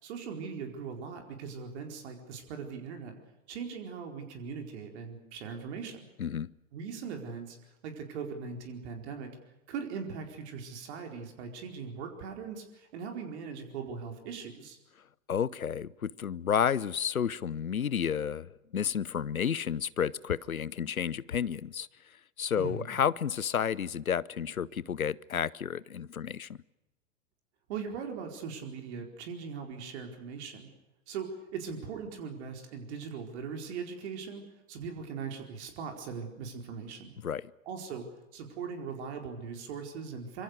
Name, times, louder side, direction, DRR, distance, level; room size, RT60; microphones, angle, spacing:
voice 1, 0.0-3.2 3.5-6.0 6.7-7.6 7.8-9.3 9.7-14.8 22.6-22.9 27.7-30.7 31.1-37.1 37.7-38.1 38.3-40.4, right 6 dB, 50° right, 4.6 m, -40 dB
voice 2, 6.2-6.5 15.3-21.9 22.4-26.6 37.2-37.5, left 8 dB, 80° left, 0.8 m, -31 dB
25.5 x 24.5 x 6.7 m
figure-of-eight pair, 95°, 42 cm